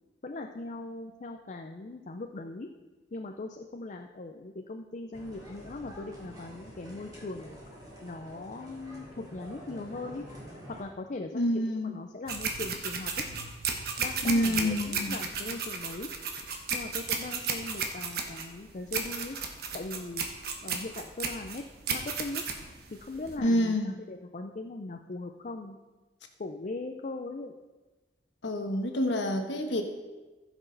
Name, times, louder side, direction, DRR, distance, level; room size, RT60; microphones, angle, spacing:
voice 1, 0.2-2.7 3.1-7.6 8.0-10.3 10.7-13.1 14.0-16.1 16.7-19.4 19.7-20.3 20.6-21.6 21.9-22.4 22.9-23.8 24.1-25.8 26.4-27.6, left 2 dB, 45° left, 4 dB, 0.5 m, -39 dB
sound 1, 5.1-10.8, equal, 20° right, 3.2 m, -47 dB
voice 2, 11.3-11.9 14.2-15.1 23.4-23.9 28.4-29.8, left 1 dB, 85° left, 4 dB, 1.3 m, -27 dB
sound 2, 12.3-23.4, right 5 dB, 60° right, 1.1 m, -34 dB
15.5 x 6.2 x 3.9 m, 1.2 s
head